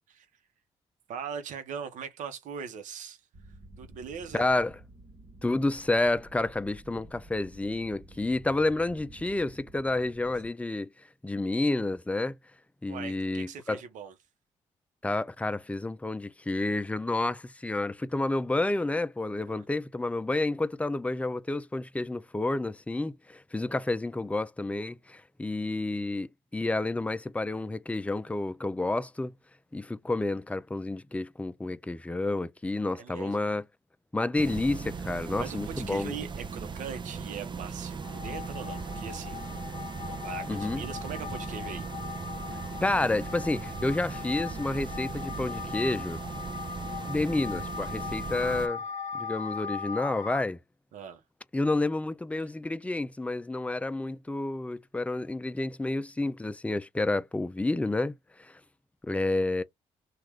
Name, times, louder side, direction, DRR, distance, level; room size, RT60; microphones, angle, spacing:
voice 1, 1.1-3.2 3.8-4.5 12.9-14.1 19.5-19.7 33.0-33.5 35.4-39.6 40.0-41.8 50.9-51.2, right 7 dB, 75° right, 0.9 m, -40 dB
sound 1, 3.3-10.5, right 2 dB, 55° right, 1.2 m, -51 dB
voice 2, 4.3-4.7 5.4-10.9 11.2-12.3 12.8-13.8 15.0-29.3 29.7-33.6 34.1-36.1 40.5-40.8 42.8-46.2 47.1-48.8 49.1-50.6 51.5-58.6 59.0-59.6, left 2 dB, 10° left, 0.4 m, -30 dB
sound 2, 34.4-48.7, right 5 dB, 35° right, 0.6 m, -38 dB
sound 3, 38.0-50.4, left 7 dB, 70° left, 0.7 m, -39 dB
3.0 x 2.4 x 3.5 m
supercardioid pair, 55°, 13 cm